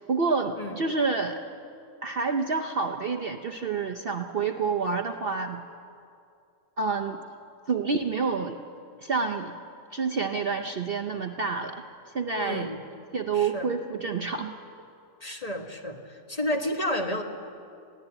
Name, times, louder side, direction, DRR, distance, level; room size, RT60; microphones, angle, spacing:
voice 1, 0.1-1.4 2.0-5.6 6.8-7.2 7.7-8.6 9.0-9.5 9.9-11.8 12.1-12.7 13.1-14.6, right 4 dB, 50° right, 4 dB, 0.9 m, -28 dB
voice 2, 12.3-12.8 13.3-13.7 15.2-17.2, left 1 dB, 25° left, 3 dB, 1.5 m, -31 dB
22.0 x 16.0 x 8.9 m, 2.5 s
omnidirectional pair, 1.5 m